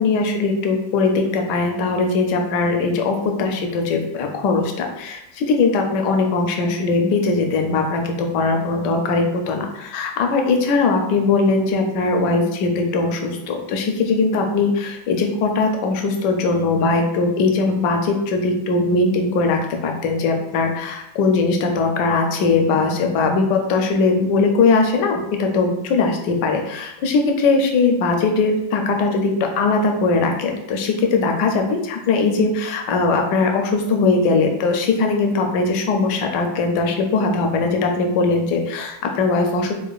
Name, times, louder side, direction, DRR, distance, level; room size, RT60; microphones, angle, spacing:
voice 1, 0.0-39.7, left 3 dB, 75° left, 3 dB, 1.0 m, -20 dB
4.8 x 2.1 x 2.3 m, 0.86 s
omnidirectional pair, 2.1 m